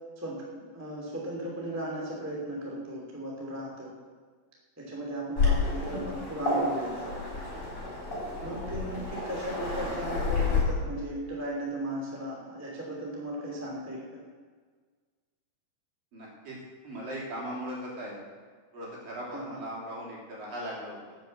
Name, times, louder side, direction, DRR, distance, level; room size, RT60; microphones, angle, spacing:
voice 1, 0.7-3.9 4.8-7.1 8.4-14.2 19.3-19.6, right 1 dB, 5° right, -3 dB, 1.9 m, -36 dB
Waves surf, 5.4-10.6, left 4 dB, 25° left, 4.8 m, -30 dB
voice 2, 16.1-16.6 16.8-18.3 18.7-21.2, equal, 55° right, -4 dB, 4.7 m, -39 dB
12.0 x 8.0 x 8.0 m, 1.5 s
omnidirectional pair, 4.7 m